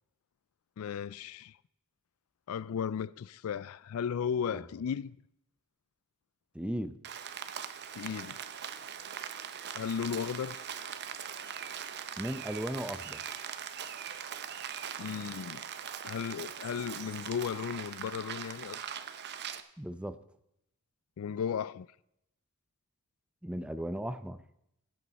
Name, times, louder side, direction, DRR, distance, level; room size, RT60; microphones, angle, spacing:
voice 1, 0.8-1.6 2.5-5.2 7.9-8.4 9.7-10.6 15.0-15.7 16.0-18.8 21.2-21.9, left 7 dB, 75° left, 0.3 m, -35 dB
voice 2, 6.5-7.0 12.2-13.2 19.8-20.2 23.4-24.4, equal, 5° right, 0.5 m, -36 dB
Rain, 7.0-19.6, right 8 dB, 50° right, 0.7 m, -41 dB
17.0 x 8.5 x 4.1 m
head